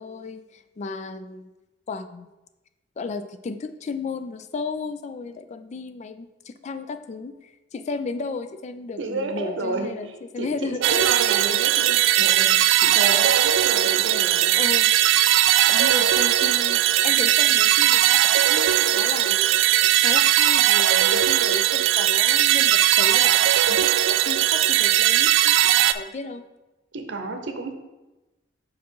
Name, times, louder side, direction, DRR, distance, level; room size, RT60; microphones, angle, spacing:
voice 1, 0.0-1.5 1.9-2.3 3.0-11.1 14.5-14.9 15.6-19.5 20.0-26.4, left 4 dB, 35° left, 10 dB, 0.3 m, -34 dB
voice 2, 9.0-10.1 10.4-14.5 26.9-27.7, right 3 dB, 70° right, 5 dB, 0.8 m, -31 dB
sound 1, 10.8-25.9, right 12 dB, 90° right, 0.3 m, -19 dB
5.6 x 4.8 x 4.6 m, 1.1 s
head